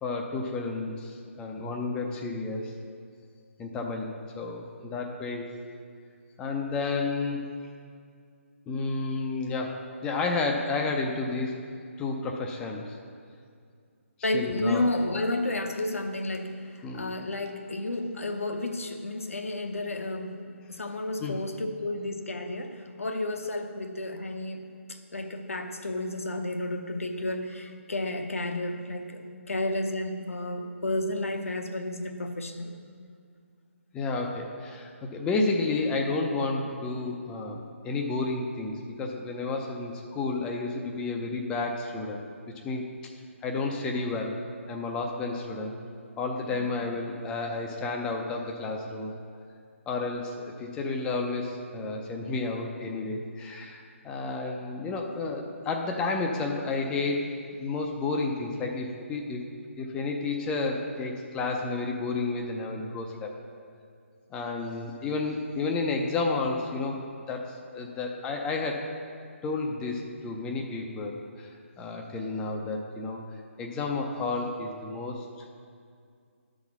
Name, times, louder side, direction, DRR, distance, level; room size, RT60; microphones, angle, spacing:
voice 1, 0.0-2.7 3.6-5.5 6.4-7.4 8.7-11.7 12.0-13.0 14.3-14.9 16.8-17.1 21.2-21.4 33.9-42.2 42.5-42.9 43.4-44.4 44.7-45.7 46.2-49.1 49.9-57.3 57.6-59.4 59.8-63.3 64.3-68.9 69.4-73.2 73.6-75.5, left 3 dB, 10° left, 1 dB, 0.5 m, -31 dB
voice 2, 14.2-32.7 46.5-46.7, left 2 dB, 80° left, 5 dB, 0.8 m, -32 dB
11.0 x 4.0 x 6.0 m, 2.3 s
figure-of-eight pair, 145°, 7 cm